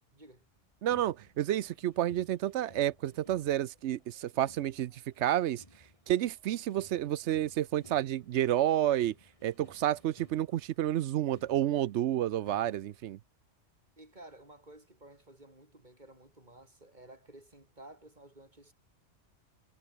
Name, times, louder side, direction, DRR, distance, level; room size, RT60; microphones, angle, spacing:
voice 1, 0.1-0.4 14.0-18.7, right 1 dB, 35° right, 6.3 m, -54 dB
voice 2, 0.8-5.6 6.1-9.1 9.4-13.2, right 12 dB, 70° right, 0.9 m, -30 dB
sound 1, 0.9-13.1, left 1 dB, 25° left, 7.5 m, -60 dB
omnidirectional pair, 1.3 m